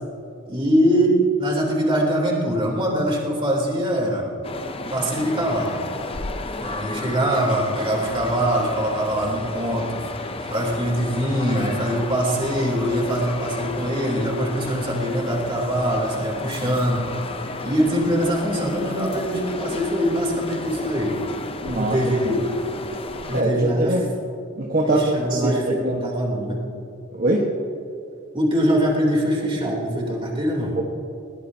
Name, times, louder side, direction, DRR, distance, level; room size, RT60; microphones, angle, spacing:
voice 1, 0.5-4.3 4.9-5.8 6.6-10.0 10.4-17.0 17.6-21.2 21.8-22.5 23.3-23.9 24.9-26.7 28.3-30.8, equal, 25° right, -2 dB, 3.4 m, -23 dB
sound 1, 4.4-23.4, left 3 dB, 25° left, 0.6 m, -33 dB
voice 2, 21.6-22.4 23.3-24.1 24.6-25.0 25.3-26.0 27.1-27.5 30.8-30.9, right 1 dB, 45° right, -2 dB, 1.4 m, -23 dB
21.5 x 19.5 x 2.9 m, 2.5 s
head